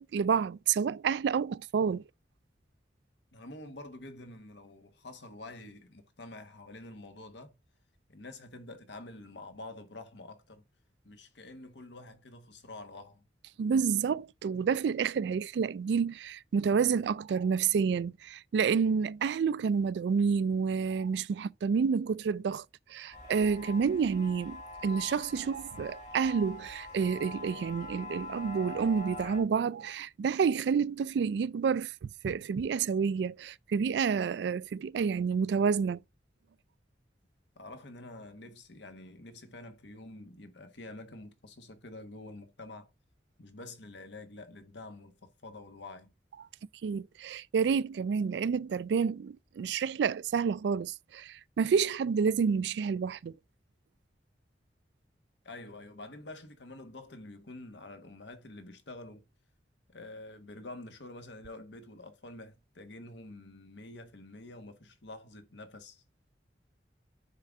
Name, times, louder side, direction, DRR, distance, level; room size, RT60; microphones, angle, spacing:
voice 1, 0.0-2.0 13.6-22.6 22.9-36.0 46.8-53.4, right 6 dB, 70° right, 0.3 m, -29 dB
voice 2, 3.3-7.6 8.1-10.6 11.0-13.2 37.6-42.9 43.4-46.1 55.4-59.2 59.9-66.0, left 2 dB, 80° left, 1.2 m, -47 dB
sound 1, 23.1-29.4, left 2 dB, 40° left, 2.7 m, -44 dB
9.7 x 3.8 x 3.5 m
head